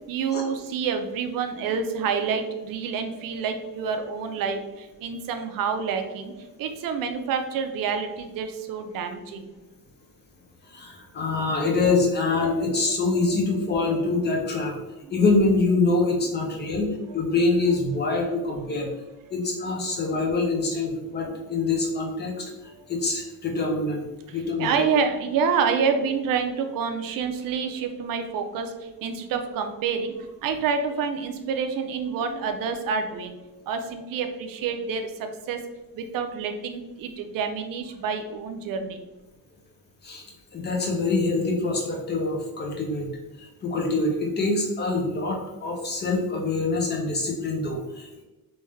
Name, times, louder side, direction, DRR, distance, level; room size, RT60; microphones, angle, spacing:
voice 1, 0.1-9.5 12.4-12.7 13.2-13.3 13.7-14.0 16.6-16.8 18.0-18.1 24.3-35.6 35.9-39.0, right 6 dB, 70° right, 6 dB, 0.5 m, -28 dB
voice 2, 10.6-14.8 15.1-18.9 19.3-24.0 24.3-24.7 40.0-40.2 40.5-43.1 43.4-48.2, left 3 dB, 30° left, 1 dB, 0.6 m, -25 dB
3.4 x 2.6 x 3.1 m, 1.0 s
cardioid pair, 175°, 36 cm